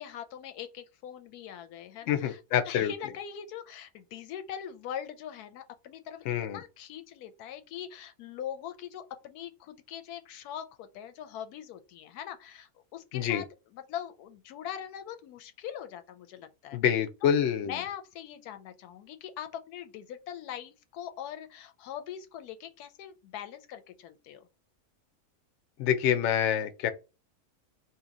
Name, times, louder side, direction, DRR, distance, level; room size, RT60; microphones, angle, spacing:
voice 1, 0.0-2.4 2.7-13.4 13.7-16.8 17.2-24.5, left 9 dB, 90° left, 1.1 m, -42 dB
voice 2, 2.1-2.9 6.3-6.6 13.1-13.4 16.7-17.8 25.8-26.9, left 9 dB, 65° left, 0.7 m, -27 dB
2.8 x 2.6 x 3.8 m
omnidirectional pair, 1.6 m